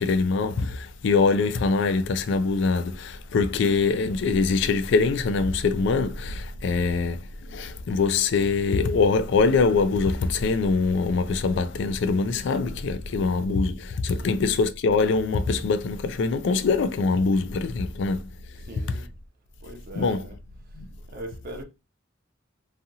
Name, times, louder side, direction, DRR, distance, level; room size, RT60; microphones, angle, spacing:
voice 1, 0.0-18.3 19.9-20.3 20.7-20.9, left 4 dB, 65° left, 0.3 m, -23 dB
voice 2, 14.2-14.6 18.7-19.1 19.6-20.4 21.1-21.6, equal, 50° right, 0.6 m, -40 dB
2.7 x 2.4 x 2.7 m
head